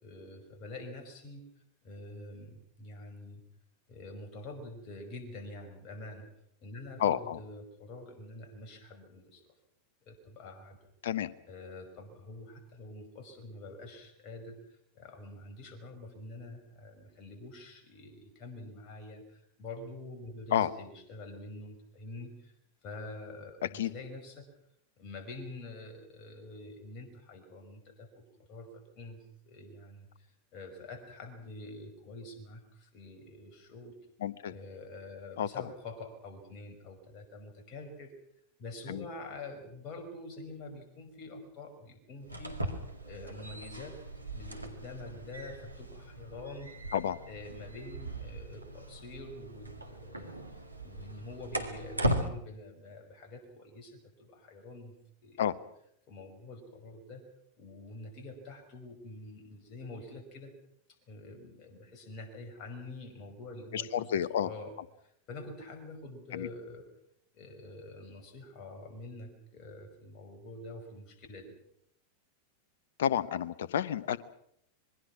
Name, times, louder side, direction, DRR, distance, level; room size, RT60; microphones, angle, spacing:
voice 1, 0.0-1.5 1.8-3.4 3.9-6.3 6.6-9.5 10.1-10.8 11.5-22.5 22.8-24.5 25.0-33.9 34.5-38.1 38.6-42.7 43.0-44.0 44.3-46.7 47.3-50.4 50.8-55.0 55.2-55.4 56.1-57.2 57.6-60.5 61.1-64.1 64.4-66.8 67.3-71.6, left 2 dB, 35° left, 6 dB, 5.4 m, -46 dB
voice 2, 7.0-7.4 11.0-11.3 20.5-20.7 23.7-23.9 34.2-34.5 35.4-35.5 38.9-39.0 46.9-47.2 55.4-55.6 63.7-64.5 66.3-66.5 73.0-74.2, left 9 dB, 60° left, 18 dB, 1.0 m, -30 dB
sound 1, 42.2-52.3, equal, 85° right, 2.0 m, -38 dB
26.0 x 21.5 x 6.1 m, 0.72 s
figure-of-eight pair, 90°, 0 cm